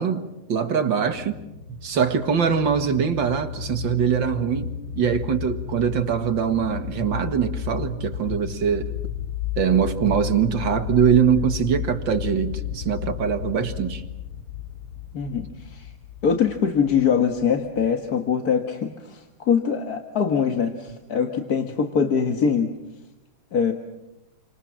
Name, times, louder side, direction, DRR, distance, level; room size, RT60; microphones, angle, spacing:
voice 1, 0.0-1.4 1.8-9.0 9.6-14.0, right 7 dB, 65° right, 8 dB, 2.4 m, -23 dB
sound 1, 1.0-18.1, left 9 dB, 80° left, 2.6 m, -33 dB
voice 2, 15.1-15.9 16.2-22.7 23.5-23.7, left 6 dB, 50° left, 5 dB, 1.9 m, -23 dB
30.0 x 25.0 x 7.4 m, 0.95 s
omnidirectional pair, 2.2 m